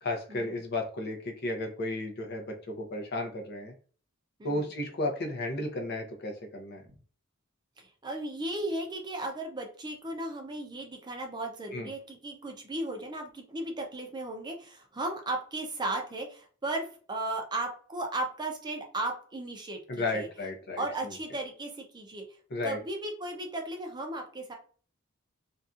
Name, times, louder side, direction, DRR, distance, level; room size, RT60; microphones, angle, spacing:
voice 1, 0.0-3.7 4.4-6.8 11.7-11.9 19.9-20.8 22.5-22.8, left 2 dB, 50° left, 3 dB, 0.6 m, -33 dB
voice 2, 7.8-20.3 20.8-22.2 22.6-24.6, right 2 dB, 20° right, 3 dB, 0.5 m, -36 dB
2.6 x 2.3 x 2.4 m, 0.42 s
head